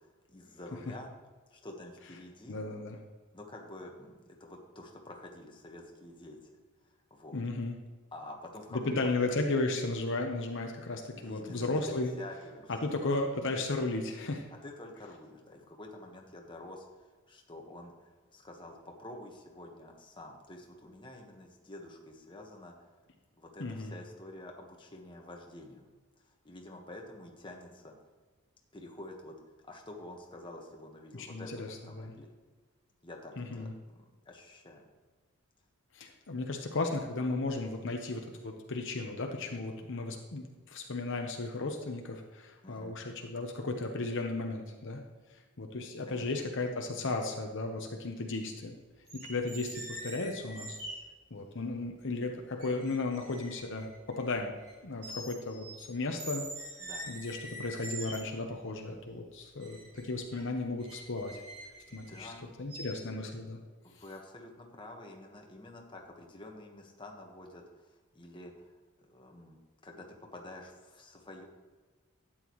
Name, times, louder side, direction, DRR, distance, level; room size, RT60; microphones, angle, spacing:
voice 1, 0.3-1.1 1.5-2.6 3.3-6.4 7.1-7.4 8.1-9.1 11.1-12.7 14.6-22.7 23.4-25.8 26.4-27.9 28.7-29.4 29.6-32.3 33.0-34.8 42.6-42.9 46.1-46.3 56.8-57.1 61.9-62.5 63.8-68.7 69.0-69.6 69.8-70.1 70.3-71.5, left 1 dB, 20° left, 1 dB, 1.4 m, -48 dB
voice 2, 2.5-3.0 7.3-7.7 8.7-12.1 12.7-14.5 23.6-23.9 31.1-32.1 33.4-33.7 35.9-45.0 45.6-48.8 49.1-50.8 51.3-54.5 54.8-56.4 57.1-61.4 61.9-62.3 62.6-63.6, left 2 dB, 60° left, 3 dB, 1.0 m, -35 dB
sound 1, 49.1-51.0 51.9-52.0 52.6-54.8 55.0-55.9 56.2-58.5 59.6-62.3 62.7-62.9, right 1 dB, 90° right, 3.5 m, -45 dB
12.5 x 9.1 x 3.1 m, 1.4 s
head